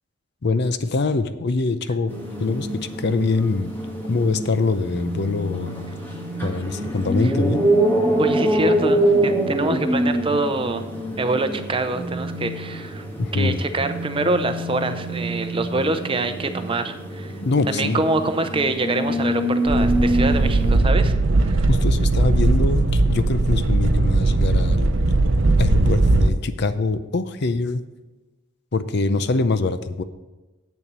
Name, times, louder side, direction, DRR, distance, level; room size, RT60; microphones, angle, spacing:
voice 1, 0.4-2.1 2.4-2.7 3.0-3.7 4.1-5.7 6.4-7.6 13.2-13.6 17.4-18.0 21.7-24.9 25.6-27.8 28.7-30.0, left 3 dB, 60° left, 11 dB, 0.6 m, -23 dB
sound 1, 2.1-20.8, right 1 dB, 10° left, 1.6 m, -25 dB
voice 2, 8.2-10.8 11.2-13.0 13.3-17.3 17.7-21.1 21.4-21.7, right 2 dB, 25° right, 9 dB, 0.6 m, -25 dB
sound 2, 19.7-26.3, right 2 dB, 70° right, 0.7 m, -18 dB
8.2 x 7.0 x 6.1 m, 1.1 s
head